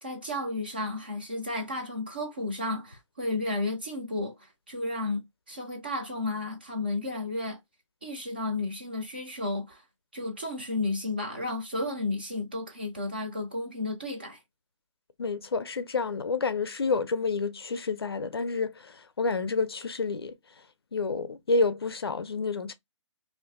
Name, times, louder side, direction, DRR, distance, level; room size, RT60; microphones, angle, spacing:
voice 1, 0.0-5.2 5.5-7.6 8.0-9.8 10.1-14.4, left 2 dB, 20° right, 0.5 m, -32 dB
voice 2, 15.2-20.3 20.9-22.7, left 4 dB, 50° left, 0.5 m, -29 dB
2.6 x 2.5 x 3.3 m
hypercardioid pair, 180°, 16 cm